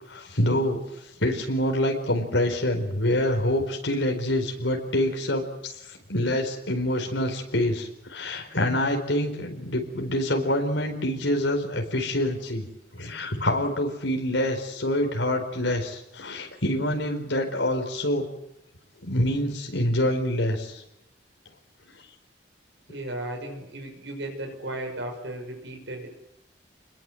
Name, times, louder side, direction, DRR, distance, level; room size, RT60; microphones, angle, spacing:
voice 1, 0.1-0.8 1.2-12.7 12.9-18.2 19.0-20.8, left 1 dB, 85° left, 2 dB, 4.6 m, -26 dB
voice 2, 22.9-26.1, right 1 dB, 80° right, 2 dB, 6.0 m, -35 dB
29.0 x 21.5 x 7.9 m, 0.83 s
head